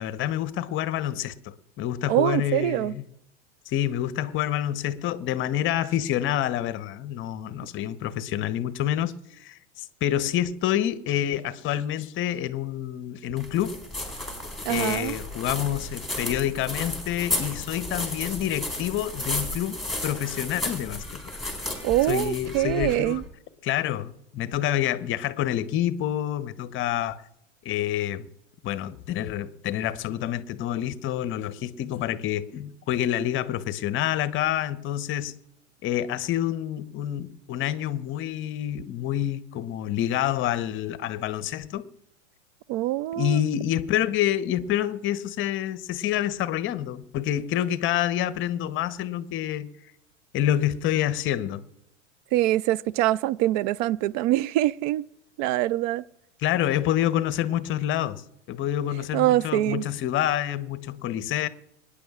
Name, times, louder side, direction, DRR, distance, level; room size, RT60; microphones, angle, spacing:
voice 1, 0.0-3.0 3.7-13.8 14.7-21.2 22.1-23.2 23.6-27.2 27.6-28.3 28.6-35.4 35.8-41.9 43.1-49.7 50.3-51.6 56.4-61.5, left 11 dB, 30° left, 0.8 m, -27 dB
voice 2, 2.1-2.9 14.7-15.1 21.8-23.2 42.7-43.4 52.3-55.0 55.4-56.0 59.1-59.8, right 15 dB, 40° right, 0.4 m, -24 dB
sound 1, 13.4-23.3, left 1 dB, ahead, 4.1 m, -33 dB
26.0 x 9.9 x 2.4 m
hypercardioid pair, 105°, 38 cm